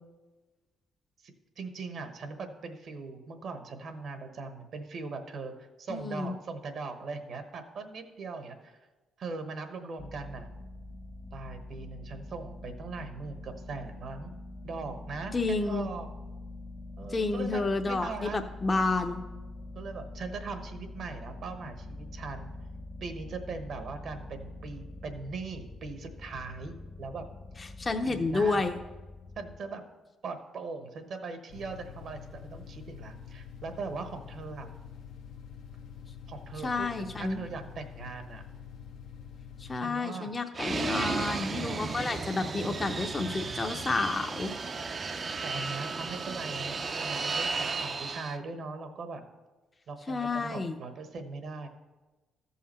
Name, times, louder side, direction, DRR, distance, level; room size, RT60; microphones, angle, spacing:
voice 1, 1.2-8.8 9.2-10.5 11.3-14.3 14.6-16.1 17.0-18.4 19.7-22.5 23.0-27.2 28.0-28.7 29.4-29.8 30.2-34.7 36.3-38.5 39.7-40.4 45.4-49.2 49.9-51.7, right 4 dB, 65° right, 7 dB, 1.1 m, -40 dB
voice 2, 5.9-6.3 15.3-15.9 17.1-19.2 27.8-28.8 36.6-37.4 39.6-44.5 50.1-50.8, left 3 dB, 30° left, 5 dB, 0.6 m, -30 dB
sound 1, 10.0-29.6, left 2 dB, 45° left, 1.1 m, -45 dB
sound 2, 31.5-39.8, left 7 dB, 80° left, 0.8 m, -46 dB
Fixed-wing aircraft airplane, 40.5-48.4, right 4 dB, 40° right, 0.5 m, -34 dB
14.0 x 5.7 x 4.3 m, 1.2 s
cardioid pair, 90°, 0 cm